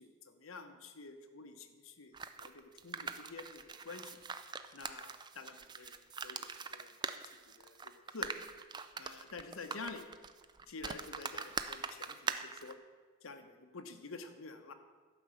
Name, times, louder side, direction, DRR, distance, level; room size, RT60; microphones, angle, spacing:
voice 1, 0.0-2.1 2.4-4.2 4.7-6.0 6.2-8.4 9.0-10.3 10.7-12.8 13.2-14.7, left 3 dB, 85° left, 6 dB, 1.0 m, -49 dB
sound 1, 2.1-12.7, right 5 dB, 20° right, 0.4 m, -42 dB
12.0 x 5.4 x 7.7 m, 1.5 s
head